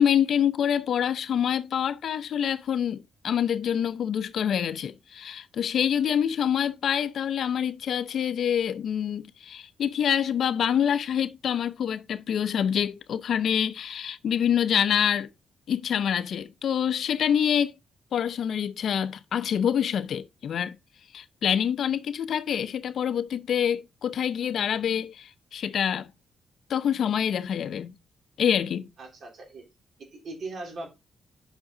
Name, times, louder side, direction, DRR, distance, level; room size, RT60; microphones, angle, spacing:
voice 1, 0.0-15.3 15.7-17.7 18.1-20.7 21.1-26.1 26.7-27.9 28.4-28.9, left 8 dB, 65° left, 0.6 m, -26 dB
voice 2, 29.0-29.6 30.0-30.9, right 3 dB, 55° right, 3.4 m, -39 dB
8.1 x 6.0 x 3.8 m
cardioid pair, 115°, 0 cm